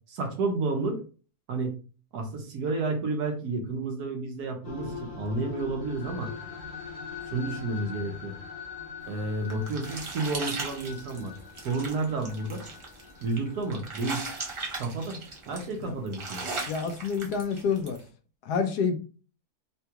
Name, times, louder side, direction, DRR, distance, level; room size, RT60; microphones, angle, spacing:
voice 1, 0.1-1.0 1.5-1.7 2.1-6.3 7.3-8.3 9.1-11.3 11.6-12.6 13.2-14.2 14.8-16.4, right 3 dB, 75° right, 1.3 m, -31 dB
sound 1, 4.6-14.8, left 6 dB, 50° left, 0.9 m, -42 dB
sound 2, 9.1-18.0, right 3 dB, 55° right, 0.3 m, -38 dB
voice 2, 16.7-18.0 18.4-19.0, left 5 dB, 85° left, 1.2 m, -28 dB
3.8 x 2.3 x 2.8 m
omnidirectional pair, 1.7 m